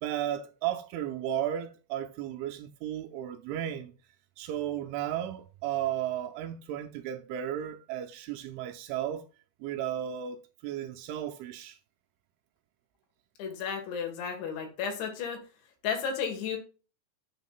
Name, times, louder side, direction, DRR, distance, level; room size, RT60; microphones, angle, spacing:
voice 1, 0.0-3.9 4.4-9.2 9.6-11.8, right 11 dB, 80° right, 2.9 m, -34 dB
voice 2, 13.4-15.4 15.8-16.6, left 6 dB, 70° left, 3.8 m, -33 dB
9.9 x 6.2 x 2.4 m
omnidirectional pair, 5.8 m